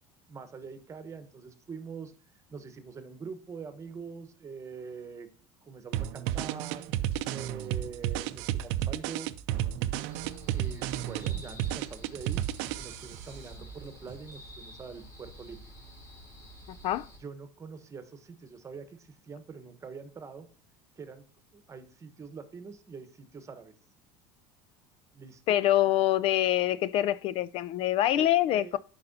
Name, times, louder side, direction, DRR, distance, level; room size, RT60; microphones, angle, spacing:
voice 1, 0.3-2.1 2.5-5.3 5.6-6.9 7.3-9.3 10.5-12.5 12.8-15.6 17.2-20.5 21.0-21.2 21.5-23.7 25.1-25.6 28.2-28.8, right 5 dB, 25° right, 1.1 m, -44 dB
sound 1, 5.9-13.2, right 12 dB, 75° right, 0.5 m, -32 dB
sound 2, 6.9-14.5, right 7 dB, 55° right, 0.9 m, -52 dB
sound 3, 10.1-17.2, equal, 30° left, 3.4 m, -49 dB
voice 2, 25.5-28.8, left 13 dB, 55° left, 0.3 m, -25 dB
9.3 x 5.5 x 2.7 m
supercardioid pair, 100°, 11 cm